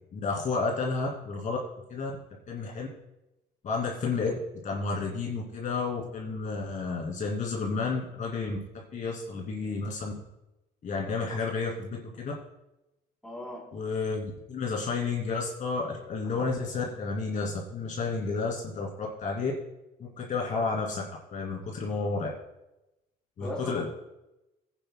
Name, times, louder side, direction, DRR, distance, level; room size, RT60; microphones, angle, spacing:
voice 1, 0.1-1.6 1.9-2.1 2.5-2.9 3.6-4.3 4.6-8.6 8.9-10.1 10.8-12.3 13.7-19.5 20.0-21.0 21.3-22.3 23.4-23.9, left 4 dB, 50° left, -2 dB, 2.5 m, -31 dB
voice 2, 13.2-13.7 21.8-21.9 23.4-23.9, left 1 dB, 5° left, -3 dB, 3.7 m, -38 dB
18.0 x 9.5 x 2.2 m, 0.93 s
cardioid pair, 110°, 17 cm